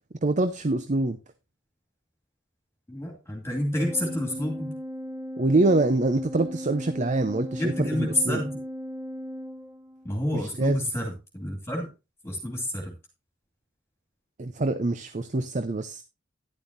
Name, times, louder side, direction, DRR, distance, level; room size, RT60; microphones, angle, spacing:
voice 1, 0.2-1.2 5.4-8.4 10.3-10.9 14.4-16.0, right 2 dB, 40° right, 0.7 m, -25 dB
voice 2, 2.9-4.7 7.5-8.6 10.0-11.9 12.2-12.9, left 1 dB, 15° left, 2.4 m, -29 dB
Organ, 3.7-10.3, equal, 15° right, 2.1 m, -37 dB
11.0 x 11.0 x 2.6 m
head